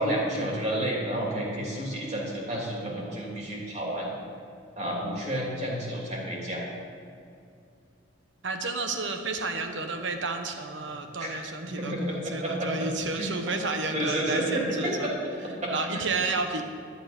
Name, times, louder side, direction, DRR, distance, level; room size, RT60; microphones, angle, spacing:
voice 1, 0.0-4.1 4.7-6.6 11.2-11.3 11.6-12.9 13.1-13.3 13.9-15.1 15.4-16.0, right 1 dB, 35° right, -3 dB, 3.0 m, -30 dB
voice 2, 8.4-15.1 15.7-16.6, right 3 dB, 70° right, 5 dB, 1.2 m, -31 dB
11.0 x 11.0 x 5.3 m, 2.5 s
head